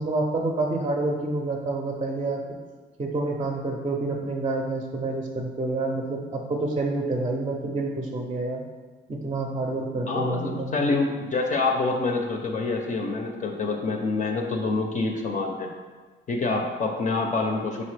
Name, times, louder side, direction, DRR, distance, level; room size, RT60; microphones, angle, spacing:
voice 1, 0.0-2.4 3.0-8.6 9.1-10.8, right 2 dB, 25° right, 1 dB, 0.5 m, -28 dB
voice 2, 10.1-15.7 16.3-17.8, left 3 dB, 40° left, 2 dB, 0.5 m, -26 dB
3.9 x 3.8 x 3.3 m, 1.4 s
cardioid pair, 90°, 20 cm